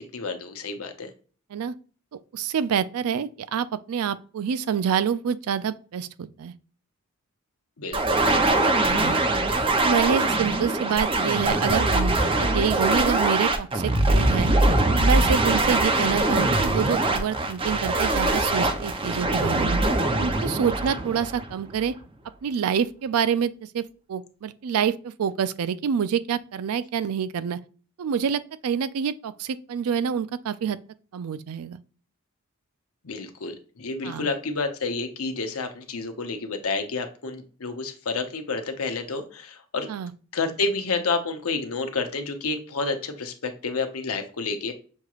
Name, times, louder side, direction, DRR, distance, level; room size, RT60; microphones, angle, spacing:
voice 1, 0.1-1.1 7.8-8.2 33.0-39.9 40.3-44.7, left 3 dB, 75° left, 0.8 m, -29 dB
voice 2, 2.1-6.5 8.9-9.2 9.8-14.5 14.9-19.8 20.2-21.9 22.4-27.6 28.0-30.8 31.1-31.8 34.0-34.3 39.9-40.1, right 7 dB, 80° right, 0.4 m, -27 dB
sound 1, 7.9-21.8, right 2 dB, 25° right, 0.5 m, -22 dB
6.4 x 3.0 x 2.4 m
head